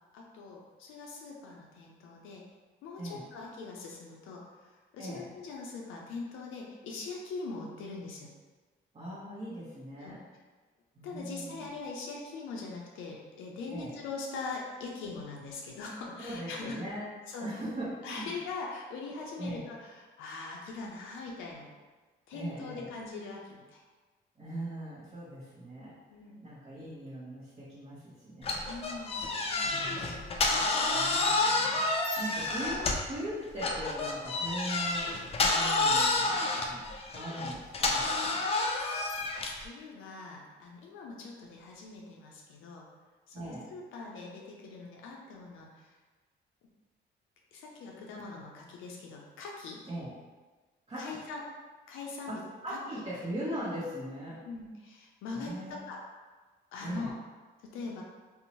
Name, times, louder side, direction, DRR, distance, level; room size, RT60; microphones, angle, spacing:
voice 1, 0.1-2.4 2.8-8.3 10.0-10.2 11.0-16.8 17.3-17.5 18.0-21.7 22.3-23.8 26.1-26.4 28.6-30.6 36.6-36.8 39.1-42.9 43.3-45.9 47.5-49.8 50.9-51.4 51.9-52.4 52.7-52.8 54.4-56.0 56.7-57.1 57.6-58.0, left 4 dB, 90° left, -1 dB, 0.5 m, -42 dB
voice 2, 5.0-5.3 8.9-10.2 10.9-11.7 13.7-13.9 16.2-17.1 17.4-18.3 19.4-19.6 22.3-22.9 24.4-25.9 26.4-28.6 29.6-30.0 30.9-31.9 32.2-38.5 43.3-43.7 49.9-50.1 50.9-51.2 52.3-52.4 52.6-54.4 55.3-55.9 56.8-57.1, right 1 dB, 35° right, -11 dB, 0.8 m, -40 dB
sound 1, 28.4-33.2 33.6-39.7, left 2 dB, 30° left, 0.3 m, -29 dB
2.6 x 2.0 x 2.8 m, 1.3 s
cardioid pair, 90°, 20 cm